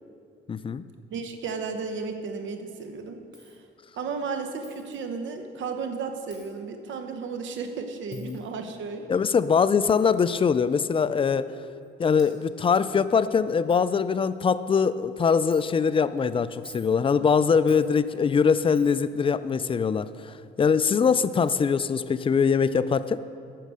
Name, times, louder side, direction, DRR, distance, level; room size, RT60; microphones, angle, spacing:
voice 1, 0.5-0.8 8.2-8.4 9.1-11.5 12.0-23.2, left 6 dB, 25° left, 13 dB, 0.4 m, -23 dB
voice 2, 1.1-3.2 4.0-9.1, right 5 dB, 70° right, 6 dB, 1.1 m, -33 dB
Coin (dropping), 3.3-3.6 4.6-5.0 6.3-6.5 8.1-8.4 9.9-10.1 11.0-11.1 11.8-11.9 12.2-12.3 13.0-13.1 13.3-13.4 13.7-13.8 14.3-14.6 15.5-15.6 16.5-16.9 17.7-17.9 18.7-19.1 20.7-20.8 21.5-21.6, equal, 5° right, 2.4 m, -50 dB
10.0 x 6.6 x 6.3 m, 2.4 s
cardioid pair, 90°, 20 cm